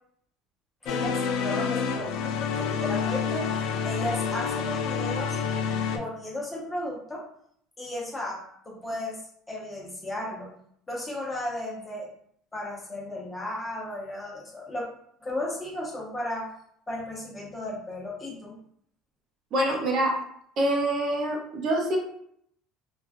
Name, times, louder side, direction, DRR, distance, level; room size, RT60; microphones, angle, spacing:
voice 1, 0.8-3.5 3.8-5.4 5.9-7.2 7.8-9.2 9.5-10.5 10.9-12.1 12.5-14.9 15.2-16.5 16.9-18.6, left 1 dB, 15° left, -4 dB, 0.7 m, -34 dB
sound 1, 0.9-6.0, left 6 dB, 70° left, 0.4 m, -28 dB
voice 2, 19.5-20.2 20.6-22.0, right 1 dB, 50° right, 0 dB, 0.6 m, -25 dB
3.0 x 2.3 x 2.4 m, 0.67 s
cardioid pair, 125°, 0 cm